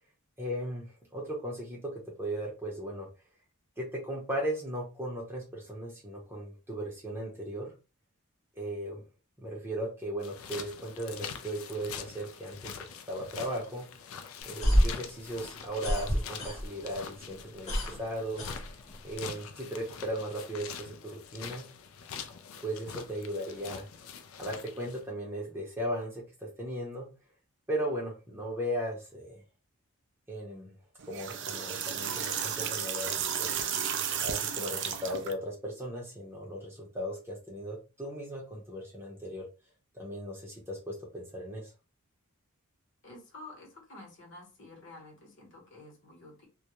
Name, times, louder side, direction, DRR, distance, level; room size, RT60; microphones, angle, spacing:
voice 1, 0.4-3.1 3.8-7.7 8.6-9.0 9.4-12.7 13.1-13.9 14.4-18.5 19.0-21.7 22.6-23.9 24.4-27.1 27.7-29.4 30.3-30.7 31.1-33.6 34.2-39.4 39.9-41.7, equal, 10° right, -3 dB, 0.6 m, -37 dB
sound 1, 10.2-25.0, left 7 dB, 70° left, 0.4 m, -44 dB
sound 2, 14.4-17.0 17.3-19.2, equal, 30° left, 0.8 m, -28 dB
sound 3, 31.0-35.3, right 8 dB, 55° right, 0.3 m, -33 dB
voice 2, 43.0-46.5, left 2 dB, 55° left, 0 dB, 0.9 m, -50 dB
2.2 x 2.0 x 2.9 m, 0.31 s
head